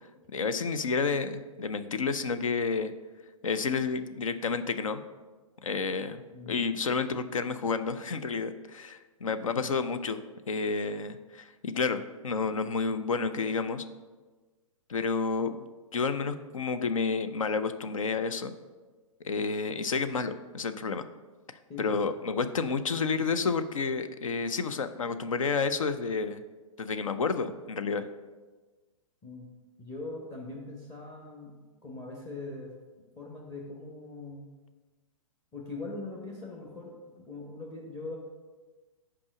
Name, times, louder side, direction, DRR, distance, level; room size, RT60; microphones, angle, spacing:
voice 1, 0.3-2.9 3.4-5.0 5.6-10.2 10.5-13.8 14.9-15.7 15.9-18.5 19.2-21.0 21.8-26.4 26.8-28.1, left 4 dB, 70° left, 11 dB, 0.6 m, -30 dB
voice 2, 9.2-9.8 21.7-22.0 29.2-29.5 29.8-31.5 31.8-32.7 33.2-34.4 35.5-38.1, left 2 dB, 15° left, -1 dB, 1.1 m, -41 dB
6.0 x 4.8 x 6.2 m, 1.3 s
figure-of-eight pair, 115°, 18 cm